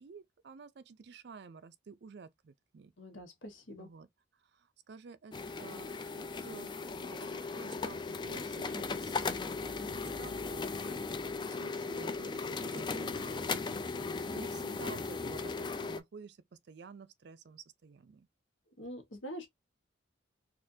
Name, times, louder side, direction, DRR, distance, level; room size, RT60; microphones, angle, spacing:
voice 1, 0.0-2.9 3.8-4.1 4.4-14.1 14.3-18.3, right 5 dB, 55° right, 0.4 m, -52 dB
voice 2, 3.0-3.9 18.8-19.5, equal, 80° left, 1.2 m, -45 dB
sound 1, 5.3-16.0, left 4 dB, 25° left, 0.3 m, -37 dB
4.3 x 2.5 x 2.6 m
head